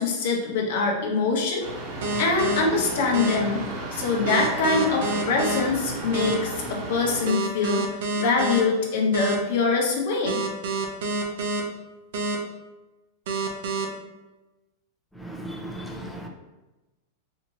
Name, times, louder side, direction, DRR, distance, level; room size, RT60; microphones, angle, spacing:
voice 1, 0.0-1.7 2.2-3.6 3.9-7.8 8.2-10.4, left 4 dB, 65° left, 0 dB, 0.9 m, -24 dB
sound 1, 1.6-7.2, right 2 dB, 40° right, 0.9 m, -34 dB
sound 2, 2.0-2.6 3.1-3.4 4.3-5.6 6.1-6.3 7.3-8.6 9.1-9.4 10.3-11.6 12.1-12.4 13.3-13.8, right 3 dB, 70° right, 0.7 m, -27 dB
voice 2, 15.2-16.3, right 1 dB, ahead, 1 dB, 0.5 m, -36 dB
4.3 x 2.7 x 2.9 m, 1.1 s
supercardioid pair, 145°, 0 cm